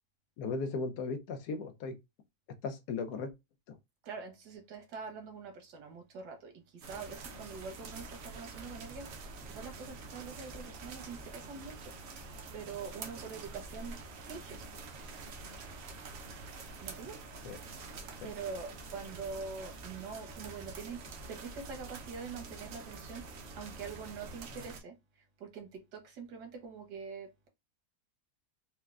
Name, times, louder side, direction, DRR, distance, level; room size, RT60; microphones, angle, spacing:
voice 1, 0.4-1.9 2.6-3.3 17.4-17.6, left 4 dB, 80° left, 1.2 m, -36 dB
voice 2, 4.0-11.9 12.5-14.6 16.8-17.2 18.2-24.9 25.4-27.5, right 5 dB, 90° right, 1.5 m, -44 dB
sound 1, 6.8-24.8, right 3 dB, 65° right, 1.0 m, -46 dB
4.3 x 2.2 x 2.3 m
omnidirectional pair, 1.7 m